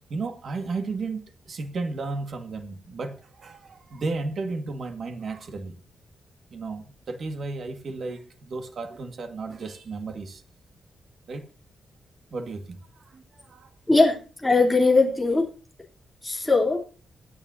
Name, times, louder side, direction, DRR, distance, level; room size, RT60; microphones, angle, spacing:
voice 1, 0.1-5.7 6.5-10.4 11.3-11.5 12.3-12.9 13.1-13.7, right 3 dB, 50° right, 8 dB, 1.8 m, -34 dB
voice 2, 13.9-15.5 16.2-16.8, left 3 dB, 5° left, -1 dB, 3.2 m, -20 dB
24.5 x 8.9 x 2.7 m, 0.35 s
wide cardioid pair, 165°, 0 cm